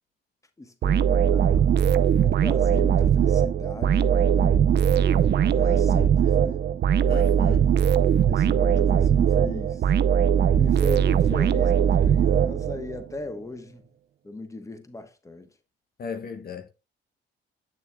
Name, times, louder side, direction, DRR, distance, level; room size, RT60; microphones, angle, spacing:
voice 1, 0.6-1.7 2.2-6.7 7.3-7.7 8.2-9.8 10.5-13.9 14.2-15.5, left 2 dB, 15° left, 1.2 m, -37 dB
sound 1, 0.8-13.0, right 8 dB, 60° right, 0.6 m, -20 dB
voice 2, 7.1-7.7 16.0-16.7, left 6 dB, 50° left, 1.1 m, -35 dB
8.7 x 7.0 x 2.3 m
cardioid pair, 90°, 20 cm